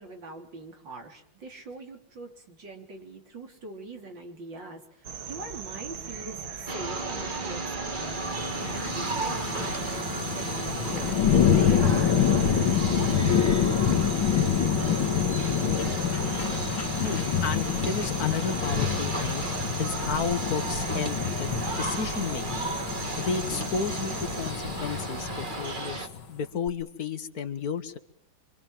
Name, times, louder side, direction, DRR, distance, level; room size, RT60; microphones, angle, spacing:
voice 1, 0.0-11.1 11.5-13.9, right 2 dB, 60° right, 4 dB, 4.1 m, -42 dB
sound 1, 5.0-24.5, right 6 dB, 80° right, 2.5 m, -39 dB
sound 2, 6.7-26.1, right 3 dB, 25° right, 1.7 m, -35 dB
sound 3, 8.1-26.2 26.7-26.8, left 8 dB, 75° left, 2.4 m, -27 dB
voice 2, 17.0-19.4 19.8-21.5 21.7-22.7 23.2-26.0 26.3-28.0, left 5 dB, 50° left, 10 dB, 1.8 m, -32 dB
26.0 x 25.5 x 7.5 m, 0.67 s
omnidirectional pair, 2.2 m